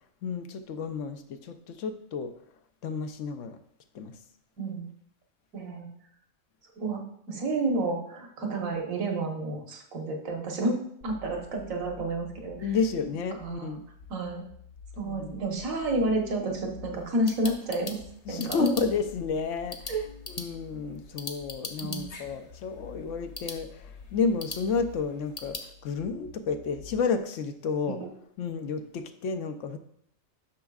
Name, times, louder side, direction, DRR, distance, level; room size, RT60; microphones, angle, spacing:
voice 1, 0.2-2.3 2.8-3.6 3.9-4.2 12.6-13.8 15.0-15.4 18.3-25.6 25.8-28.0 28.4-29.8, left 5 dB, 70° left, 8 dB, 1.0 m, -31 dB
voice 2, 4.6-4.9 5.5-5.9 6.8-7.0 7.3-10.8 11.0-12.7 13.4-13.8 14.1-14.4 15.0-18.0 18.3-18.8 19.9-20.0 21.8-22.1 27.9-28.0, right 2 dB, 75° right, 1 dB, 1.6 m, -30 dB
sound 1, 11.0-27.0, left 6 dB, 90° left, 1.3 m, -49 dB
sound 2, 16.9-25.7, left 3 dB, 35° left, 0.7 m, -43 dB
11.5 x 6.2 x 2.4 m, 0.68 s
omnidirectional pair, 1.4 m